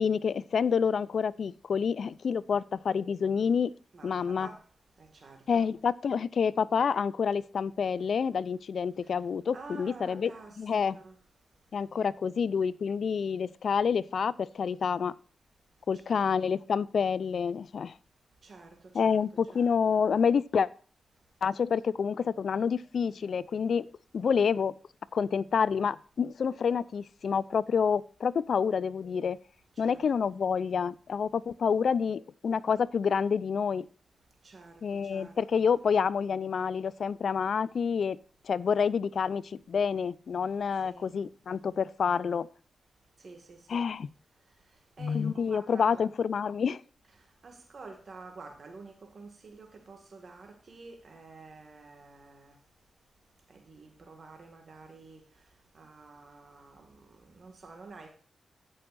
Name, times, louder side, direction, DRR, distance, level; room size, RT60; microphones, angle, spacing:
voice 1, 0.0-3.7 4.0-4.5 5.5-10.3 10.6-11.0 11.7-15.1 15.9-17.9 18.9-20.7 21.4-24.7 25.1-29.4 29.8-33.9 34.8-38.2 38.5-42.5 43.7-44.1 45.0-46.8, left 6 dB, 70° left, 0.4 m, -28 dB
voice 2, 3.9-4.6 5.0-5.6 9.5-11.2 15.9-16.3 18.4-18.8 19.0-19.2 19.5-20.0 29.8-30.1 34.4-35.6 40.8-41.1 43.2-43.9 45.0-46.0 47.4-52.5 53.5-55.2 55.7-58.1, right 3 dB, 60° right, 2.0 m, -49 dB
15.5 x 6.3 x 2.6 m
supercardioid pair, 40°, 0 cm